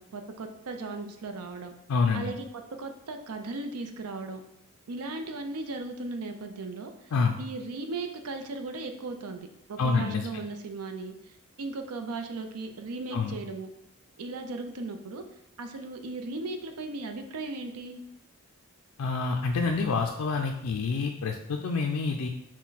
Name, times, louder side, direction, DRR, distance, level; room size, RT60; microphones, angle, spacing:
voice 1, 0.0-1.7 2.1-2.4 2.8-4.4 4.9-6.9 7.4-11.1 11.6-13.7 14.2-15.2 15.6-18.0, right 3 dB, 85° right, 6 dB, 0.6 m, -37 dB
voice 2, 1.9-2.3 7.1-7.4 9.8-10.3 13.1-13.4 19.0-22.3, left 4 dB, 75° left, 3 dB, 0.4 m, -27 dB
6.0 x 2.2 x 4.0 m, 0.77 s
head